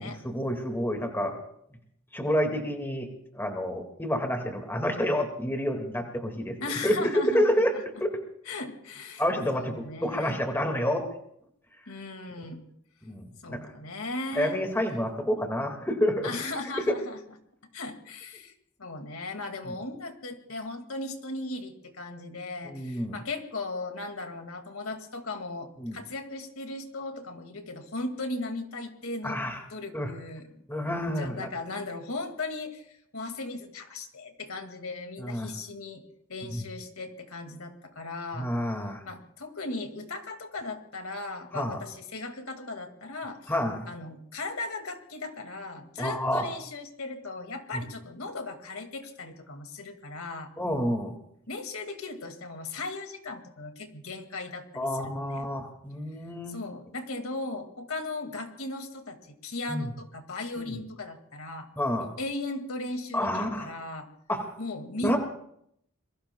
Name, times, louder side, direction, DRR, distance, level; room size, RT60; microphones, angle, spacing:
voice 1, 0.0-1.4 2.1-3.1 3.3-6.6 6.8-7.7 8.0-8.1 9.2-11.1 13.0-13.7 14.4-16.3 16.9-17.0 22.6-23.2 25.8-26.0 29.2-29.6 29.9-30.1 30.7-31.5 35.2-35.5 36.5-36.6 38.4-39.0 41.5-41.8 43.5-43.8 46.0-46.5 50.6-51.2 54.8-56.6 59.7-59.9 60.6-60.8 61.8-62.1 63.1-63.7 64.3-64.5 65.0-65.2, equal, 10° left, 3 dB, 1.9 m, -28 dB
voice 2, 6.6-7.8 8.5-9.2 9.5-10.4 11.9-12.6 13.4-14.7 16.2-17.2 17.7-18.5 18.8-29.4 29.7-30.6 31.0-36.0 36.3-38.5 39.0-43.5 43.9-50.5 51.5-55.5 56.5-61.7 62.0-64.1 64.6-65.2, left 2 dB, 75° left, 5 dB, 2.1 m, -37 dB
27.0 x 22.5 x 2.3 m, 0.70 s
head